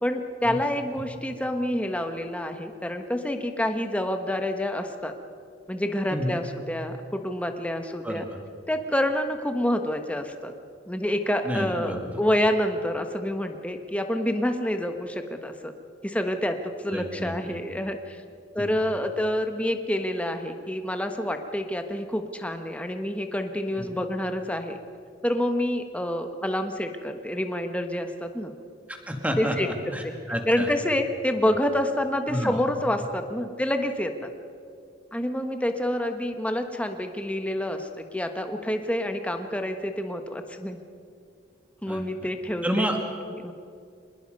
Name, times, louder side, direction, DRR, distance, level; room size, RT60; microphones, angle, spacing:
voice 1, 0.0-5.1 5.7-8.2 8.7-10.5 10.9-15.7 16.0-18.2 18.5-24.8 25.2-28.5 29.4-30.2 30.5-34.3 35.1-40.8 41.8-42.9 43.3-43.5, left 1 dB, 10° left, 6 dB, 1.2 m, -28 dB
voice 2, 8.0-8.4 11.4-12.2 16.9-17.6 18.6-18.8 23.7-23.9 28.9-30.7 31.5-31.6 32.3-32.6 41.9-42.0 42.6-43.0, equal, 10° right, 3 dB, 2.2 m, -30 dB
25.0 x 20.5 x 5.3 m, 2.3 s
head